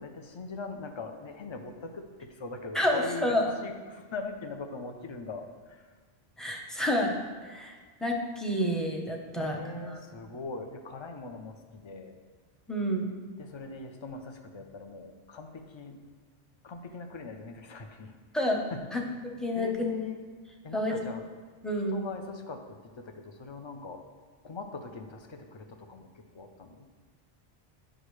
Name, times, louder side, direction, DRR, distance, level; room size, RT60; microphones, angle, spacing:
voice 1, 0.0-5.9 9.3-12.2 13.4-16.1 16.6-18.1 18.7-19.0 19.6-20.2 20.6-21.2 21.9-24.0 24.4-26.9, left 4 dB, 35° left, 5 dB, 0.5 m, -41 dB
voice 2, 2.7-3.5 6.4-7.1 7.4-9.6 9.9-10.0 12.7-13.1 18.3-18.6 18.9-19.0 19.4-19.9 20.7-21.0 21.6-22.0, equal, ahead, 0 dB, 0.7 m, -29 dB
10.0 x 6.0 x 3.2 m, 1.5 s
omnidirectional pair, 1.1 m